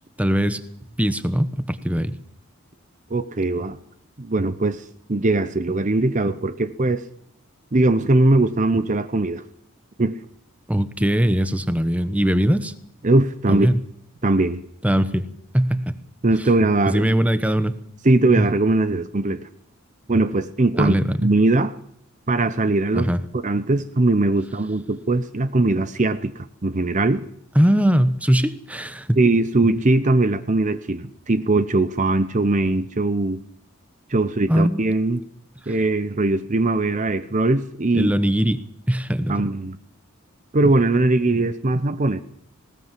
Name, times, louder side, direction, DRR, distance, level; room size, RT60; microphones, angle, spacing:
voice 1, 0.2-0.6 1.0-2.2 10.7-12.7 13.5-13.8 14.8-15.3 15.5-16.0 16.8-17.8 18.4-18.5 20.8-21.3 22.9-23.2 27.5-29.2 34.5-34.8 35.7-35.8 37.9-38.6 38.9-39.5, equal, 5° right, 1.0 m, -20 dB
voice 2, 3.1-3.8 4.2-7.0 7.7-9.4 10.0-10.2 13.0-13.7 14.2-14.6 16.2-17.1 18.0-19.4 20.1-21.7 22.3-23.1 23.3-27.2 29.2-33.4 34.1-35.2 35.7-38.1 39.3-39.8 40.5-42.2, right 2 dB, 35° right, 0.7 m, -20 dB
19.5 x 18.5 x 7.5 m
head